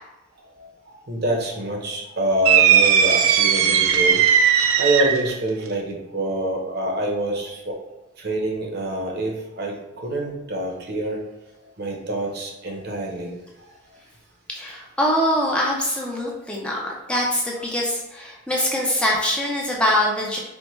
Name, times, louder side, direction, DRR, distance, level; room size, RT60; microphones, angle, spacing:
voice 1, 0.9-4.2 4.8-7.7 8.2-11.2 11.8-13.3, right 1 dB, 50° right, 0 dB, 0.7 m, -26 dB
sound 1, 2.5-5.3, right 8 dB, 75° right, 0.3 m, -17 dB
voice 2, 14.5-20.4, left 1 dB, 5° left, -3 dB, 0.3 m, -23 dB
4.3 x 2.1 x 3.0 m, 0.97 s
head